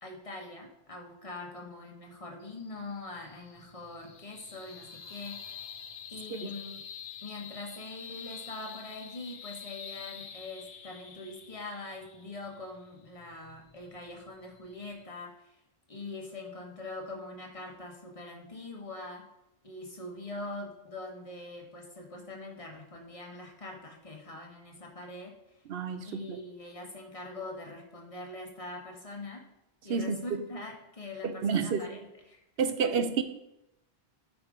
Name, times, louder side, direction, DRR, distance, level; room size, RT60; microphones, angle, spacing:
voice 1, 0.0-5.7 6.1-6.8 7.2-15.6 15.9-19.3 19.6-25.6 26.0-29.4 29.8-32.4 32.8-33.0, left 2 dB, 30° left, 0 dB, 1.3 m, -43 dB
sound 1, 2.4-15.0, left 7 dB, 85° left, 1.1 m, -47 dB
voice 2, 25.7-26.4 29.9-30.2 31.2-32.0 32.6-33.2, right 6 dB, 65° right, 9 dB, 0.8 m, -30 dB
9.2 x 3.7 x 4.9 m, 0.84 s
omnidirectional pair, 1.1 m